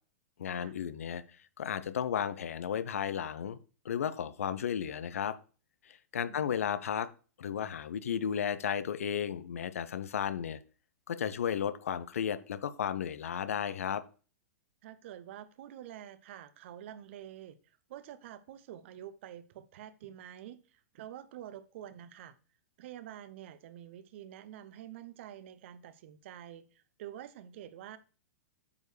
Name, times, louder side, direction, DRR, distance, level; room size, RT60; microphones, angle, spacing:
voice 1, 0.4-1.2 1.6-3.6 3.8-5.3 5.9-7.1 7.4-10.6 11.1-14.0, left 8 dB, 65° left, 0.6 m, -34 dB
voice 2, 6.3-6.6 14.8-22.4 22.8-28.0, right 11 dB, 50° right, 0.8 m, -48 dB
8.6 x 6.3 x 3.2 m
figure-of-eight pair, 100°, 8 cm